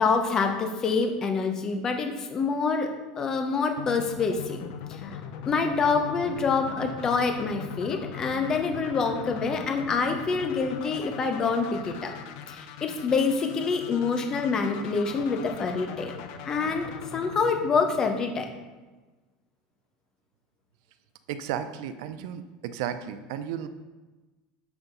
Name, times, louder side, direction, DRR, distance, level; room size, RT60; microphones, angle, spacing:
voice 1, 0.0-4.6 4.9-5.2 5.5-12.1 12.5-16.1 16.5-16.9 17.1-18.5, left 4 dB, 25° left, 5 dB, 0.8 m, -26 dB
sound 1, 3.8-18.7, left 8 dB, 65° left, 0.7 m, -40 dB
voice 2, 21.3-23.7, right 9 dB, 75° right, 11 dB, 0.5 m, -34 dB
7.0 x 3.5 x 5.4 m, 1.2 s
supercardioid pair, 140°, 2 cm